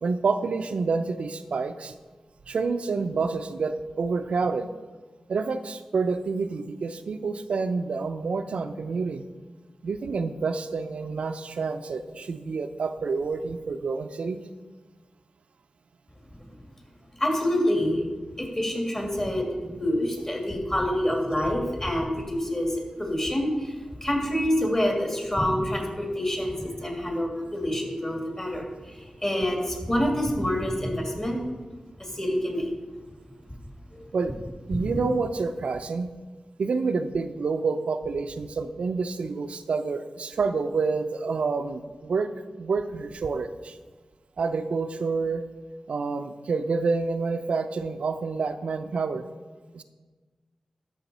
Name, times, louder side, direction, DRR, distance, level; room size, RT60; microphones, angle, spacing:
voice 1, 0.0-1.9 2.5-4.7 5.3-9.3 9.8-14.4 34.1-34.3 34.7-36.1 36.6-43.8 44.4-45.4 45.9-49.2 49.7-49.8, right 4 dB, 85° right, 8 dB, 0.5 m, -28 dB
voice 2, 17.2-18.0 18.4-23.7 24.0-31.5 32.0-32.7 33.9-34.0 34.7-34.8, left 1 dB, 25° left, 0 dB, 2.3 m, -27 dB
12.0 x 6.2 x 4.2 m, 1.3 s
wide cardioid pair, 75°, 2 cm